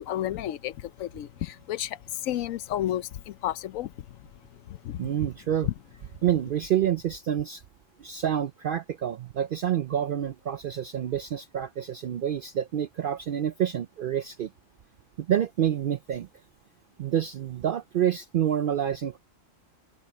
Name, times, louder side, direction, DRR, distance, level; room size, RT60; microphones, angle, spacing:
voice 1, 0.0-3.9 4.7-5.0, left 12 dB, 80° left, 1.0 m, -32 dB
voice 2, 5.0-5.7 6.2-7.6 8.0-14.5 15.2-16.3 17.0-19.2, right 10 dB, 70° right, 0.5 m, -28 dB
open air
omnidirectional pair, 1.4 m